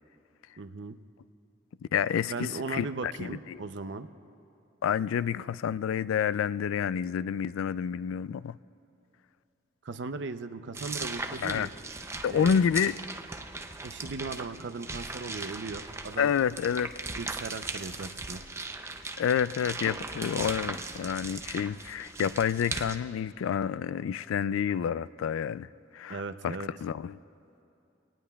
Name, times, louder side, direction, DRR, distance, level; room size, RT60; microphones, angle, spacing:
voice 1, 0.6-1.0 2.3-4.1 9.8-11.7 12.3-12.6 13.8-16.3 17.2-18.4 26.1-26.7, right 4 dB, 60° right, 9 dB, 0.5 m, -37 dB
voice 2, 1.9-3.6 4.8-8.6 11.4-11.7 12.2-13.0 16.2-16.9 19.2-25.7 25.9-26.6 26.8-27.2, left 8 dB, 90° left, 17 dB, 0.3 m, -29 dB
sound 1, 10.7-23.0, right 3 dB, 15° right, 0.5 m, -38 dB
25.0 x 18.0 x 2.3 m, 2.7 s
head